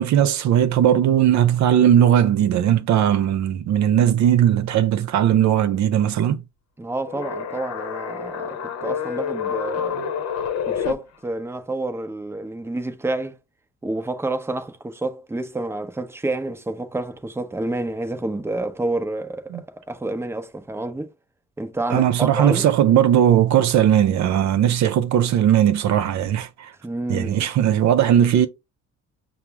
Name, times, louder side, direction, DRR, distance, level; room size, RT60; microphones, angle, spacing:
voice 1, 0.0-6.4 19.5-19.6 21.9-26.7 27.1-28.5, right 10 dB, 65° right, 0.5 m, -18 dB
voice 2, 6.8-10.1 10.7-13.4 13.8-21.1 21.6-22.7 26.8-27.5, right 2 dB, 10° right, 0.7 m, -29 dB
sound 1, 7.1-10.9, left 7 dB, 60° left, 0.7 m, -28 dB
5.9 x 2.0 x 3.4 m
cardioid pair, 90°, 30 cm